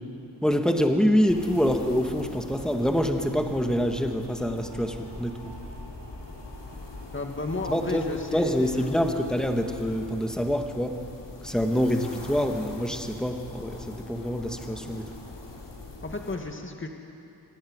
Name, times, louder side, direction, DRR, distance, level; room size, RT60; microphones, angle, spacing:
voice 1, 0.4-5.5 7.7-8.0 8.3-11.0 11.4-15.1, equal, ahead, 4 dB, 1.8 m, -26 dB
sound 1, 1.3-16.4, left 2 dB, 90° left, 2.9 m, -42 dB
sound 2, 4.4-9.9, right 2 dB, 75° right, 4.3 m, -50 dB
voice 2, 7.1-9.0 16.0-16.9, left 2 dB, 30° left, 4 dB, 1.9 m, -33 dB
25.5 x 11.5 x 9.8 m, 2.7 s
cardioid pair, 55°, 43 cm